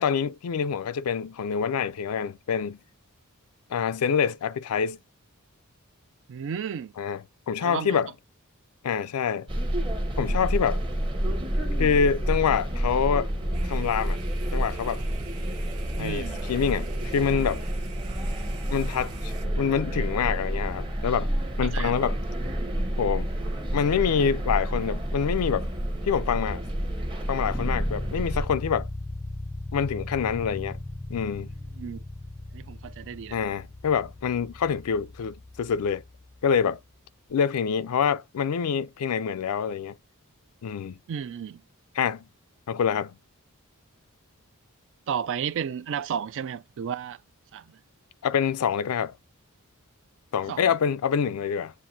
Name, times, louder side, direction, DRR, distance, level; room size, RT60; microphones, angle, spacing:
voice 1, 0.0-2.8 3.7-5.0 7.0-8.1 8.8-9.5 10.2-10.8 11.8-13.3 13.6-14.2 14.5-15.0 16.0-17.6 18.7-21.3 21.6-22.2 23.0-23.3 23.7-25.7 26.0-26.6 27.3-28.9 29.7-30.8 31.1-31.5 33.3-36.0 36.4-36.8 37.3-39.9 40.6-41.0 42.0-42.3 42.7-43.2 48.2-49.2 50.3-51.7, left 7 dB, 80° left, 0.4 m, -26 dB
voice 2, 6.3-6.9 7.6-8.0 16.0-16.4 21.7-22.0 31.8-32.0 32.5-33.4 41.1-41.6 45.1-47.2 47.5-47.7 50.5-50.8, right 7 dB, 60° right, 0.4 m, -33 dB
sound 1, 9.5-28.5, equal, 20° right, 0.9 m, -29 dB
sound 2, 13.5-19.5, right 8 dB, 80° right, 0.9 m, -48 dB
sound 3, 27.4-36.5, left 2 dB, 10° left, 0.4 m, -38 dB
7.5 x 2.6 x 2.6 m
head